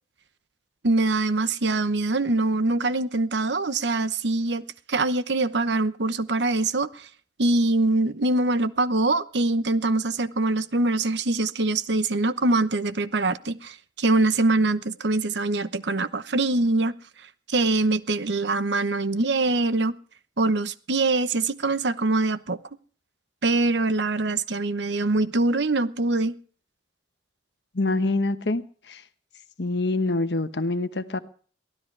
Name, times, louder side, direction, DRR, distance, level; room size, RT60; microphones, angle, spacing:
voice 1, 0.8-7.1 7.4-17.0 17.5-20.0 20.4-22.6 23.4-26.3, right 2 dB, 70° right, 1.0 m, -23 dB
voice 2, 27.7-29.0 29.6-31.2, left 2 dB, 70° left, 1.2 m, -25 dB
23.5 x 16.0 x 3.4 m
head